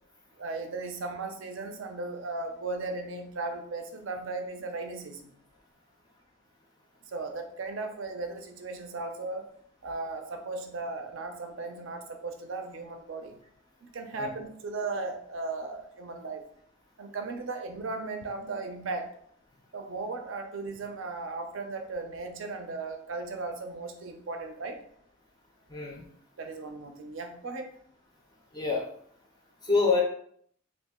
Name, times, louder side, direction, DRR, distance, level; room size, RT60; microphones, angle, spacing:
voice 1, 0.4-5.3 7.1-9.5 9.8-13.4 13.8-16.4 17.0-19.1 19.7-24.8 26.4-27.7, right 3 dB, 70° right, 5 dB, 0.5 m, -36 dB
voice 2, 25.7-26.1 28.5-28.9 29.6-30.0, left 4 dB, 20° left, -1 dB, 0.4 m, -26 dB
2.8 x 2.4 x 3.5 m, 0.64 s
head